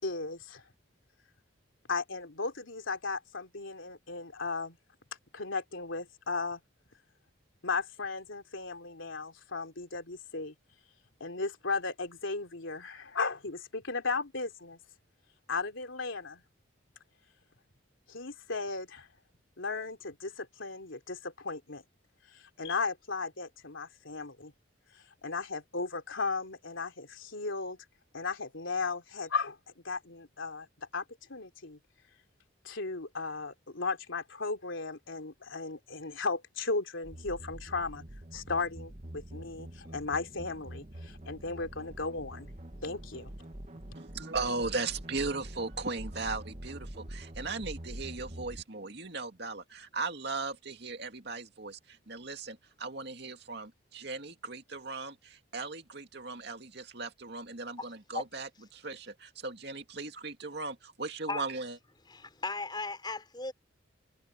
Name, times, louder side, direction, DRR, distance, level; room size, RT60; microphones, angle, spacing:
voice 1, 0.0-0.6 1.9-4.8 5.3-6.6 7.6-10.5 11.2-14.8 15.5-16.4 18.1-19.1 19.6-21.8 22.3-24.5 25.2-27.8 28.1-29.6 29.8-30.7 30.9-31.0 31.3-31.8 32.6-38.0 38.3-42.5 42.8-43.3, left 4 dB, 80° left, 3.2 m, -36 dB
sound 1, 37.0-48.6, right 1 dB, 35° right, 1.4 m, -45 dB
voice 2, 43.9-61.8, right 3 dB, 55° right, 2.5 m, -38 dB
voice 3, 62.1-63.5, left 3 dB, 20° left, 5.1 m, -36 dB
head